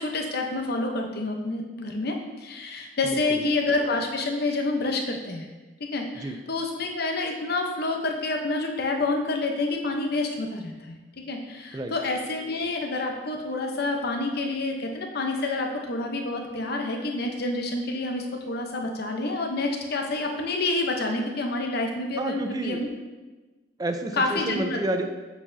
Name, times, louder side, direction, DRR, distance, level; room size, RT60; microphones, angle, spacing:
voice 1, 0.0-5.5 5.8-11.0 11.3-22.9 24.1-24.8, left 2 dB, 55° left, 3 dB, 0.8 m, -28 dB
voice 2, 3.1-3.4 6.2-6.4 11.7-11.9 22.2-22.8 23.8-25.0, right 1 dB, 20° right, 6 dB, 0.5 m, -30 dB
7.3 x 5.6 x 2.7 m, 1.2 s
head